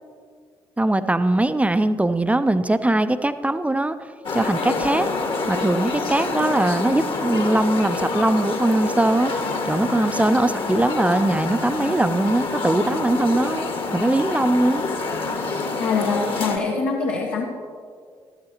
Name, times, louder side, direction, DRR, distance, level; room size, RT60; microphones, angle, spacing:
voice 1, 0.8-4.0 4.3-5.1 5.5-9.3 9.6-14.8, right 1 dB, 10° right, 11 dB, 0.5 m, -21 dB
sound 1, 4.2-16.6, left 3 dB, 45° left, 1.5 m, -27 dB
voice 2, 15.8-17.5, left 4 dB, 70° left, -2 dB, 1.2 m, -24 dB
13.0 x 13.0 x 2.9 m, 2.1 s
figure-of-eight pair, 45°, 13 cm